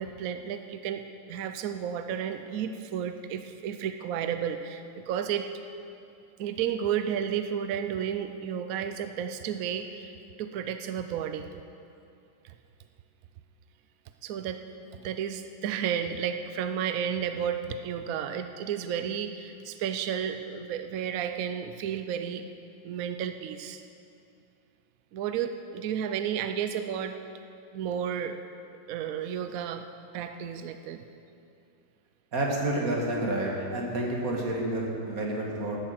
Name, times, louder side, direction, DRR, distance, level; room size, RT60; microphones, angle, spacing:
voice 1, 0.0-5.5 6.4-11.5 12.4-12.5 14.2-14.6 15.0-22.4 22.8-23.8 25.1-27.1 27.7-28.4 28.9-29.8 30.1-31.0, right 8 dB, 75° right, 8 dB, 0.7 m, -32 dB
voice 2, 32.3-35.8, right 1 dB, 45° right, -1 dB, 2.2 m, -29 dB
11.5 x 8.7 x 7.6 m, 2.6 s
omnidirectional pair, 2.1 m